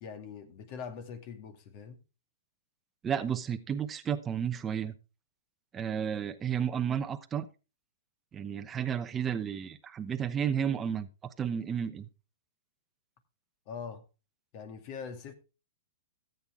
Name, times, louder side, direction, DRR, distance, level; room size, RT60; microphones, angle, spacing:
voice 1, 0.0-2.0 13.7-14.0 14.5-15.3, left 6 dB, 45° left, 2.2 m, -42 dB
voice 2, 3.0-4.9 5.7-7.5 8.3-11.1 11.4-12.1, right 8 dB, 20° right, 0.9 m, -32 dB
14.0 x 8.1 x 3.6 m
hypercardioid pair, 130°, 0 cm